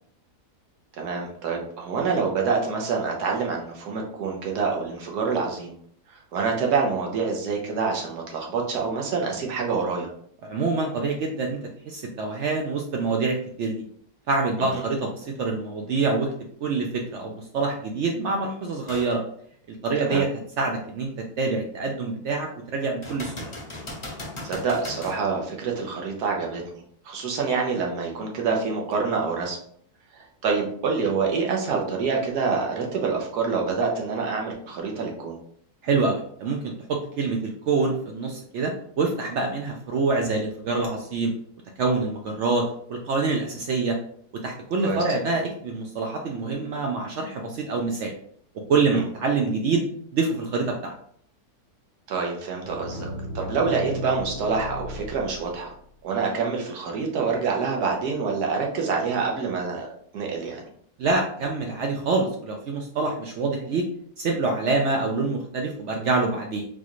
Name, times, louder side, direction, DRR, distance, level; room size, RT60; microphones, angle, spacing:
voice 1, 1.0-5.7 6.1-10.1 14.6-14.8 20.0-20.2 24.4-29.6 30.1-35.4 44.8-45.0 48.9-49.0 52.1-53.1 53.3-55.7 56.0-59.9 60.1-60.7, right 5 dB, 85° right, 0 dB, 1.4 m, -26 dB
voice 2, 10.4-11.6 11.9-13.8 14.3-16.3 16.6-19.2 19.7-20.3 20.6-23.5 35.8-38.7 39.0-41.3 41.8-44.0 44.4-48.1 48.7-49.8 50.1-50.9 61.0-63.9 64.2-66.6, right 3 dB, 70° right, 2 dB, 0.7 m, -26 dB
sound 1, 18.9-19.2 19.7-19.8 23.0-25.2 28.9-29.0, left 2 dB, 25° left, 0.7 m, -37 dB
sound 2, 52.6-55.8, left 2 dB, 80° left, 1.1 m, -35 dB
4.0 x 2.4 x 2.9 m, 0.62 s
omnidirectional pair, 1.6 m